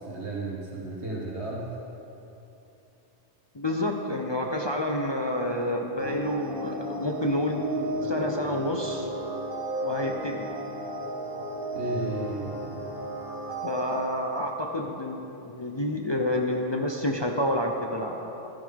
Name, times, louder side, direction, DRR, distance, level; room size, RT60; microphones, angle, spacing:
voice 1, 0.0-1.7 11.7-12.6, right 2 dB, 65° right, -4 dB, 2.0 m, -33 dB
voice 2, 3.5-7.6 8.0-9.1 9.8-10.5 13.6-18.5, left 1 dB, 30° left, 1 dB, 0.6 m, -29 dB
sound 1, 6.0-14.0, equal, 50° right, 1.5 m, -33 dB
14.0 x 12.5 x 3.6 m, 2.9 s
omnidirectional pair, 1.2 m